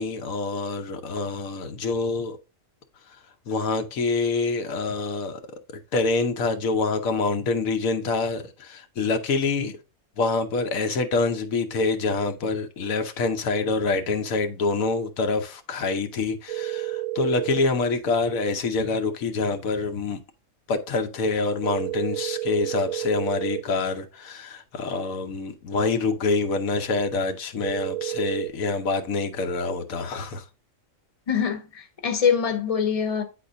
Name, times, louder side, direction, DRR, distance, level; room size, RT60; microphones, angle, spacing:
voice 1, 0.0-2.4 3.5-5.4 5.9-9.7 10.2-20.2 20.7-30.4, left 3 dB, 85° left, 1.3 m, -26 dB
sound 1, 16.5-17.6 21.6-23.6 27.6-28.5, right 17 dB, 90° right, 1.0 m, -30 dB
voice 2, 31.3-33.2, left 7 dB, 30° left, 1.0 m, -24 dB
9.2 x 4.2 x 2.6 m
omnidirectional pair, 1.4 m